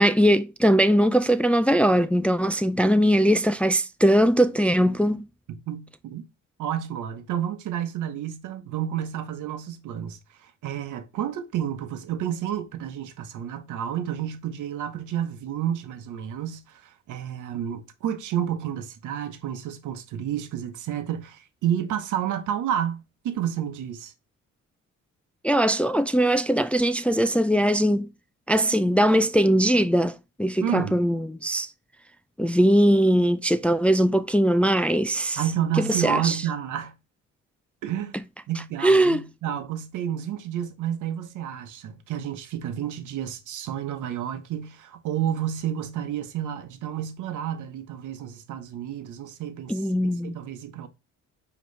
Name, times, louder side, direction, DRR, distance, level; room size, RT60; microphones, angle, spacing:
voice 1, 0.0-5.3 25.4-28.1 28.5-31.7 32.4-35.4 35.8-36.4 38.8-39.2 49.7-50.3, equal, 5° left, 0.3 m, -20 dB
voice 2, 5.5-6.2 6.6-24.1 30.6-31.0 35.4-36.9 37.8-38.2 38.5-50.9, right 10 dB, 80° right, 1.0 m, -30 dB
9.3 x 3.1 x 3.2 m
cardioid pair, 90°, 30 cm